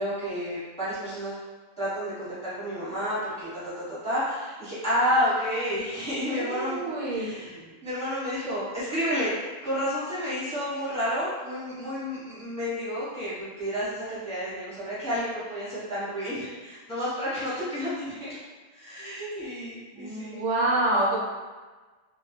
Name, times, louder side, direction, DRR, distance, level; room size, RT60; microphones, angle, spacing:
voice 1, 0.0-1.4 1.8-7.6 7.8-18.4 18.7-20.4, equal, 5° left, -11 dB, 0.9 m, -30 dB
voice 2, 6.3-7.7 19.9-21.2, right 2 dB, 80° right, -5 dB, 1.0 m, -27 dB
2.2 x 2.1 x 3.1 m, 1.3 s
omnidirectional pair, 1.3 m